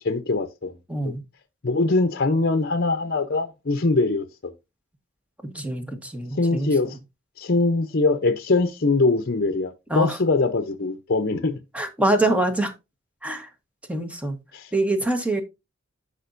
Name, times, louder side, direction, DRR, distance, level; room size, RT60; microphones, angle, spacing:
voice 1, 0.0-0.8 1.0-1.1 1.6-4.5 6.3-7.0 7.4-11.6 14.5-14.7, left 3 dB, 50° left, 0.7 m, -22 dB
voice 2, 0.9-1.2 5.4-6.7 9.9-10.2 11.7-12.7 13.2-13.5 13.9-14.4 14.7-15.4, right 1 dB, 5° right, 1.3 m, -24 dB
11.0 x 5.1 x 2.6 m
head